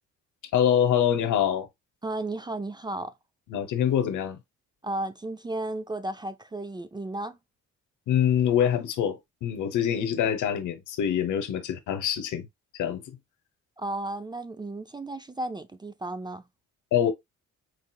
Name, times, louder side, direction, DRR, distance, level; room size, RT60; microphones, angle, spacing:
voice 1, 0.5-1.7 3.5-4.4 8.1-12.5 12.7-13.2 16.9-17.1, left 9 dB, 80° left, 0.9 m, -25 dB
voice 2, 2.0-3.1 4.8-7.4 13.8-16.4, right 2 dB, 15° right, 0.4 m, -34 dB
4.7 x 2.8 x 2.3 m
cardioid pair, 90°, 30 cm